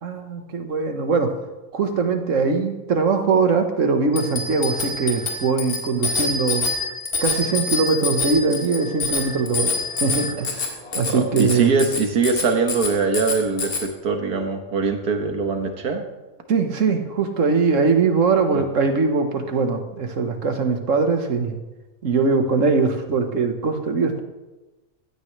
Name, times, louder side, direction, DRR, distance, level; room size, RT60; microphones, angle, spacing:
voice 1, 0.0-1.3 1.7-6.7 7.2-9.7 10.0-11.7 16.5-21.6 22.0-24.2, right 4 dB, 60° right, 5 dB, 1.6 m, -21 dB
Bicycle bell, 4.1-13.8, left 3 dB, 75° left, 2.4 m, -26 dB
voice 2, 10.9-16.0 18.5-18.6, right 4 dB, 85° right, 5 dB, 1.9 m, -22 dB
15.5 x 13.0 x 3.3 m, 1.1 s
omnidirectional pair, 1.6 m